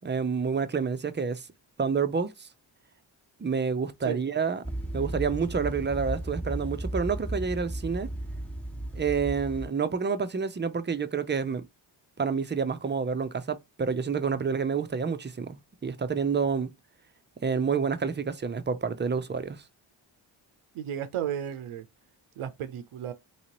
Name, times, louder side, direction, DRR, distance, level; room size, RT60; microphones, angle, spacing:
voice 1, 0.0-1.5 1.8-2.5 3.4-4.6 4.9-8.1 8.9-11.7 12.2-16.7 17.4-19.6, right 5 dB, 20° right, 0.5 m, -28 dB
sound 1, 4.6-9.7, right 1 dB, 5° left, 1.0 m, -34 dB
voice 2, 20.7-21.8 22.4-23.1, right 10 dB, 80° right, 0.6 m, -33 dB
3.1 x 2.8 x 2.9 m
cardioid pair, 45°, 50 cm